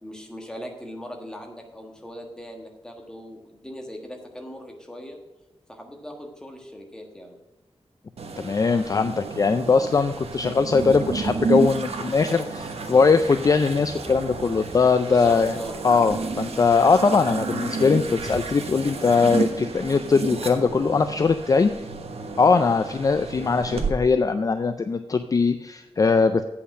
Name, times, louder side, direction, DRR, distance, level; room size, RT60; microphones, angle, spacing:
voice 1, 0.0-5.2 5.7-7.3 14.9-15.8, equal, 5° left, 2 dB, 1.4 m, -39 dB
sound 1, 8.2-23.9, right 4 dB, 80° right, 1.1 m, -31 dB
voice 2, 8.4-15.6 15.8-21.7 22.4-26.4, left 4 dB, 35° left, 9 dB, 0.4 m, -21 dB
8.3 x 5.7 x 7.4 m, 1.1 s
wide cardioid pair, 170°, 10 cm